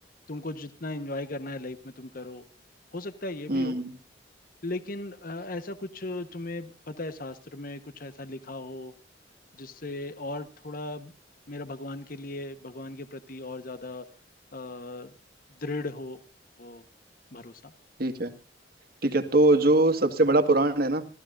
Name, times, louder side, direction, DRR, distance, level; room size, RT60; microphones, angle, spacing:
voice 1, 0.3-2.5 2.9-3.8 4.6-8.9 9.6-11.1 11.5-14.0 14.5-15.1 15.6-16.2 16.6-16.8 17.3-17.7, left 2 dB, 50° left, 1.2 m, -37 dB
voice 2, 3.5-3.9 18.0-18.3 19.0-21.0, right 2 dB, 55° right, 1.8 m, -22 dB
26.5 x 15.0 x 2.6 m
head